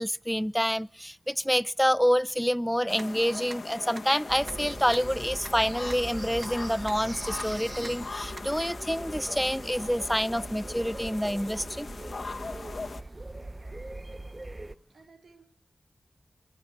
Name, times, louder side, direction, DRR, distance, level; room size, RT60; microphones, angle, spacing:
voice 1, 0.0-11.9, equal, ahead, 0.7 m, -27 dB
sound 1, 2.9-13.0, left 3 dB, 70° left, 1.6 m, -40 dB
sound 2, 3.0-3.1 3.5-3.6 3.9-4.0 4.5-4.6 4.9-5.0 5.4-5.5 5.9-6.0 6.4-6.5 6.9-7.0 7.4-7.5 7.8-7.9 8.4-8.5, right 2 dB, 50° right, 1.3 m, -42 dB
sound 3, 4.3-14.8, right 2 dB, 30° right, 0.9 m, -41 dB
voice 2, 13.4-14.5 14.9-15.6, right 4 dB, 90° right, 4.1 m, -58 dB
25.0 x 12.0 x 4.7 m
cardioid pair, 40°, 0 cm